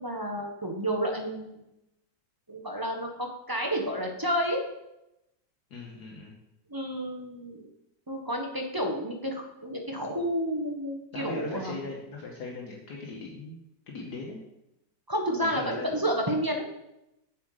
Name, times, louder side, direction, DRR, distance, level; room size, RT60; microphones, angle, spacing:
voice 1, 0.0-1.6 2.5-4.6 6.7-7.7 8.1-11.8 15.1-16.6, equal, 15° right, 2 dB, 0.7 m, -30 dB
voice 2, 5.7-6.4 11.1-13.6 13.9-14.4 15.4-15.9, left 3 dB, 65° left, -1 dB, 1.6 m, -39 dB
7.7 x 7.4 x 4.8 m, 0.88 s
omnidirectional pair, 1.9 m